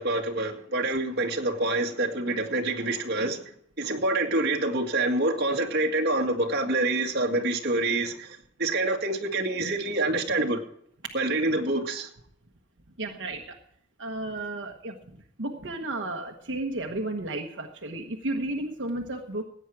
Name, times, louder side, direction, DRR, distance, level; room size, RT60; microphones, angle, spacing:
voice 1, 0.0-3.4 3.8-8.3 8.6-10.6 11.1-12.1, right 2 dB, 60° right, 1 dB, 2.1 m, -26 dB
voice 2, 13.0-13.5 14.0-15.0 15.4-19.4, right 2 dB, 90° right, 2 dB, 1.3 m, -33 dB
16.5 x 9.3 x 4.8 m, 0.67 s
head